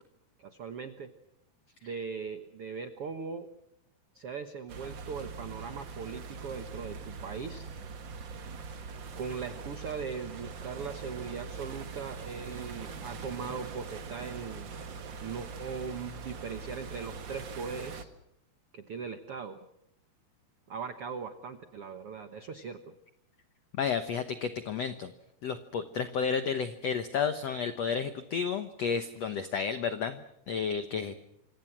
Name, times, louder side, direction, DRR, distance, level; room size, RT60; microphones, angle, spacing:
voice 1, 0.4-1.1 1.8-3.5 4.1-7.7 9.2-14.7 15.2-18.1 18.7-19.6 20.7-22.9, right 5 dB, 90° right, 9 dB, 1.2 m, -39 dB
sound 1, 4.7-18.0, right 5 dB, 70° right, 1.1 m, -42 dB
voice 2, 23.8-25.1 25.4-31.2, left 6 dB, 90° left, 10 dB, 1.4 m, -32 dB
27.5 x 25.5 x 6.1 m, 0.81 s
omnidirectional pair, 4.7 m